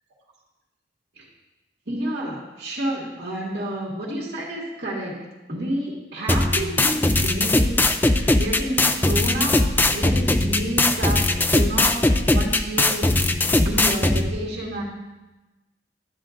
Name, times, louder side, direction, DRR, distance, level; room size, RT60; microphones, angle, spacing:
voice 1, 1.9-7.8 8.1-9.6 9.9-12.0 12.3-13.3 13.6-14.8, right 1 dB, 60° right, -5 dB, 1.9 m, -29 dB
sound 1, 6.3-14.3, left 2 dB, 10° left, 0.3 m, -20 dB
12.5 x 10.0 x 2.5 m, 1.1 s
head